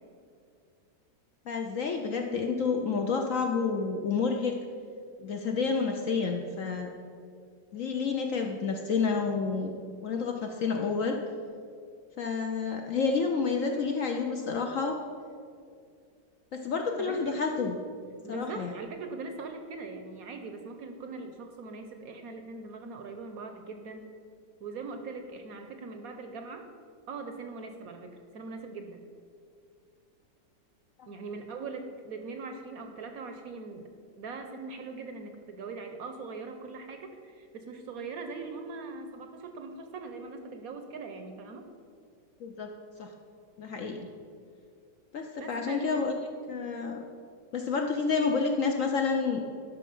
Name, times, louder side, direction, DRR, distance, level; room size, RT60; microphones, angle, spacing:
voice 1, 1.5-4.5 5.2-6.9 7.7-11.2 12.2-14.9 16.5-17.8 18.3-18.7 42.4-42.7 43.0-43.1 43.6-44.1 45.1-46.1 46.5-47.0 47.5-49.4, left 5 dB, 60° left, 3 dB, 0.9 m, -29 dB
voice 2, 17.0-17.4 18.2-24.1 24.6-26.6 27.1-29.0 31.1-33.9 34.2-41.6 45.4-46.1, right 4 dB, 65° right, 6 dB, 1.0 m, -41 dB
11.5 x 5.8 x 5.4 m, 2.2 s
omnidirectional pair, 1.9 m